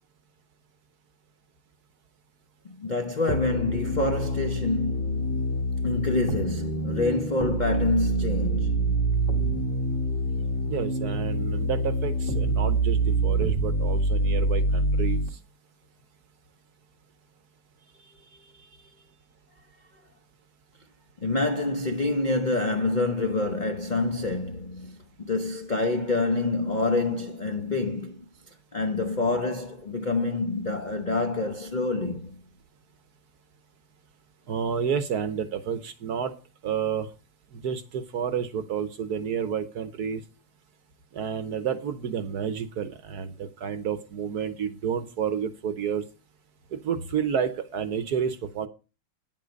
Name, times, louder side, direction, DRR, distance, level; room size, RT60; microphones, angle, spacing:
voice 1, 2.6-5.4 5.8-8.9 18.3-18.7 21.2-28.3 28.7-32.3, left 2 dB, 80° left, 0.4 m, -27 dB
sound 1, 3.3-15.3, right 1 dB, 55° left, 2.3 m, -26 dB
voice 2, 10.7-15.2 34.5-36.3 36.6-37.1 37.5-40.2 41.1-46.0 46.7-48.7, right 7 dB, 60° right, 1.1 m, -30 dB
9.4 x 7.5 x 5.2 m
omnidirectional pair, 2.3 m